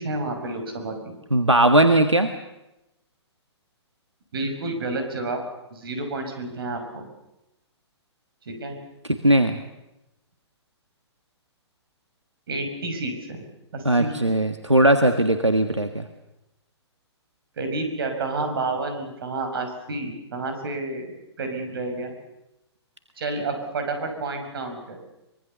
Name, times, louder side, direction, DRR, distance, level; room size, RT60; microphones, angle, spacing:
voice 1, 0.0-1.2 4.3-5.4 5.7-7.1 8.5-8.8 12.5-13.4 13.7-14.2 17.6-22.1 23.2-25.1, right 2 dB, 55° right, 6 dB, 6.0 m, -30 dB
voice 2, 1.3-2.3 9.2-9.6 13.8-16.0, right 1 dB, 90° right, 8 dB, 1.6 m, -18 dB
24.5 x 22.5 x 6.9 m, 0.93 s
figure-of-eight pair, 120°, 15 cm